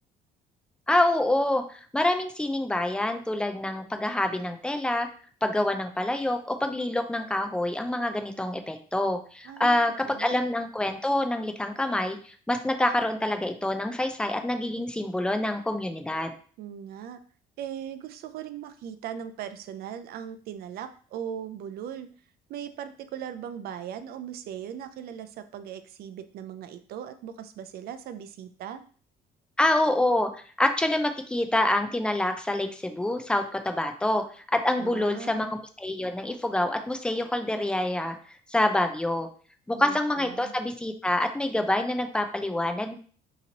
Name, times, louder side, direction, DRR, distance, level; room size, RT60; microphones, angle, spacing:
voice 1, 0.9-5.1 5.4-16.3 29.6-30.3 30.6-34.3 34.5-38.2 38.5-39.3 39.7-42.9, left 1 dB, 5° left, 7 dB, 0.4 m, -26 dB
voice 2, 9.4-10.4 16.6-17.2 17.6-22.1 22.5-28.8 34.8-35.6 39.8-40.5, right 9 dB, 65° right, 10 dB, 0.4 m, -39 dB
2.9 x 2.7 x 3.9 m, 0.43 s
cardioid pair, 110°, 17 cm